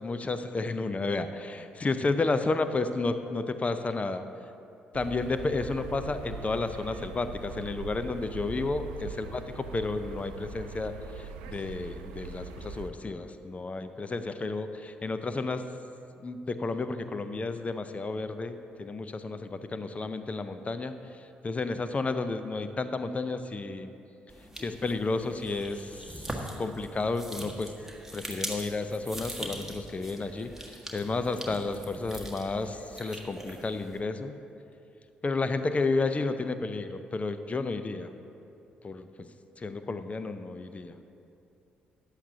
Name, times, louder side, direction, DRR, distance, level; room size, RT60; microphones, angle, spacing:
voice 1, 0.0-4.2 4.9-15.6 16.2-20.9 21.4-23.9 24.6-26.2 26.6-27.7 28.1-34.4 35.2-38.1 38.8-39.1 39.6-40.9, left 3 dB, 30° left, 10 dB, 0.6 m, -32 dB
sound 1, 4.9-12.9, right 4 dB, 70° right, 0.5 m, -42 dB
sound 2, 24.3-34.0, right 1 dB, 5° right, 1.6 m, -42 dB
14.5 x 9.8 x 2.8 m, 2.7 s
figure-of-eight pair, 45°, 5 cm